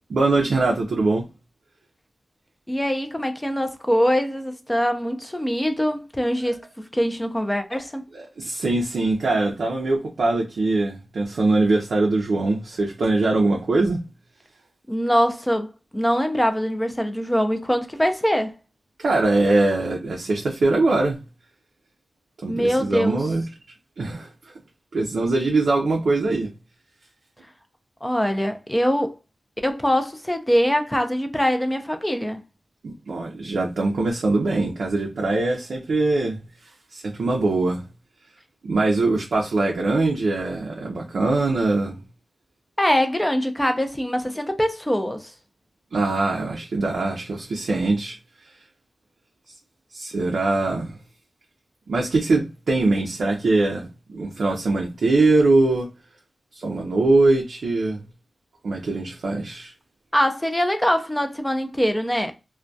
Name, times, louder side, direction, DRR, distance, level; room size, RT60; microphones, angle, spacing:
voice 1, 0.1-1.3 8.1-14.0 19.0-21.2 22.4-23.4 24.0-24.5 24.9-26.5 32.8-37.8 38.6-42.0 45.9-48.2 48.4-48.5 49.9-51.0 51.9-55.9 56.5-58.0 58.6-59.7, right 2 dB, 85° right, 0.4 m, -22 dB
voice 2, 2.7-8.1 14.9-15.7 15.9-18.5 22.5-23.2 28.0-29.1 29.6-32.4 42.8-45.3 60.1-62.3, equal, 10° left, 0.4 m, -23 dB
2.2 x 2.1 x 2.6 m
wide cardioid pair, 90°, 0 cm